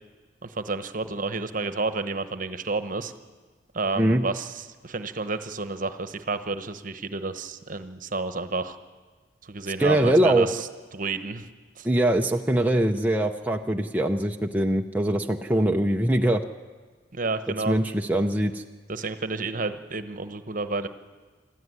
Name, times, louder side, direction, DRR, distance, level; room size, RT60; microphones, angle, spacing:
voice 1, 0.4-3.1 3.7-8.8 9.4-10.7 10.9-11.5 11.8-11.9 17.1-17.8 18.9-20.9, right 3 dB, 45° right, 10 dB, 1.1 m, -30 dB
voice 2, 9.8-10.5 11.8-16.4 17.7-18.6, right 1 dB, 10° right, 2 dB, 0.6 m, -22 dB
25.5 x 13.5 x 9.5 m, 1.5 s
head